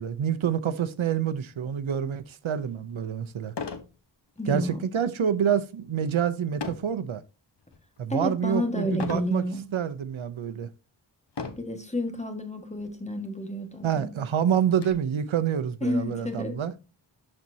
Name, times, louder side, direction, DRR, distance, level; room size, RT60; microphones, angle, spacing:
voice 1, 0.0-3.5 4.5-7.2 8.0-9.4 9.7-10.7 13.8-16.7, right 8 dB, 85° right, 0.7 m, -27 dB
sound 1, 2.5-2.6 3.5-3.9 4.4-4.7 6.6-7.0 7.6-8.0 9.0-9.3 10.1-10.2 11.3-11.8 12.8-12.9 13.2-13.3 13.8-14.9, left 5 dB, 60° left, 1.2 m, -36 dB
voice 2, 4.4-4.8 8.1-9.6 11.6-14.1 15.8-16.6, left 1 dB, 15° left, 1.6 m, -30 dB
12.5 x 4.3 x 2.7 m
wide cardioid pair, 95°, 46 cm